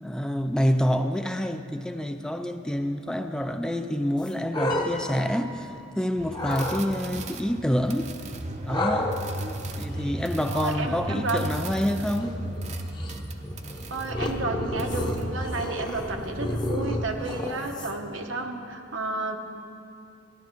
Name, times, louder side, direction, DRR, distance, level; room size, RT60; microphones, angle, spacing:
voice 1, 0.0-8.1 8.6-9.2 9.8-12.4, equal, 5° left, 7 dB, 0.4 m, -27 dB
sound 1, 4.2-5.9 6.3-6.8 8.7-18.2, left 1 dB, 25° left, 0.8 m, -32 dB
Piano, 4.7-6.2, left 3 dB, 50° left, 1.1 m, -40 dB
sound 2, 6.2-15.6, right 1 dB, 35° right, 0.6 m, -35 dB
voice 2, 10.5-11.6 13.9-19.4, right 2 dB, 85° right, 3 dB, 1.1 m, -31 dB
14.0 x 11.0 x 4.5 m, 2.5 s
head